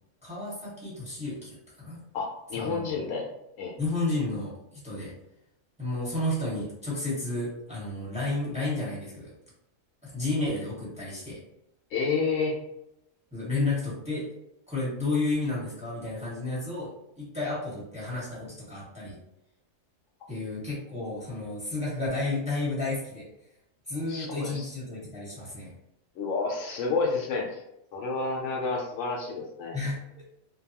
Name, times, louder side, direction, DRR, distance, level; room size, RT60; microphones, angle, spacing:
voice 1, 0.2-2.0 2.5-2.9 3.8-5.1 5.8-9.3 10.0-11.4 13.3-14.3 14.7-16.9 17.2-19.2 20.3-23.3 23.9-25.7 29.7-30.2, left 2 dB, 5° right, -7 dB, 1.0 m, -32 dB
voice 2, 2.1-3.3 3.6-3.7 11.9-12.6 24.1-24.7 26.2-27.6 27.9-29.8, left 4 dB, 75° left, 0 dB, 0.9 m, -30 dB
2.7 x 2.2 x 2.7 m, 0.82 s
omnidirectional pair, 1.4 m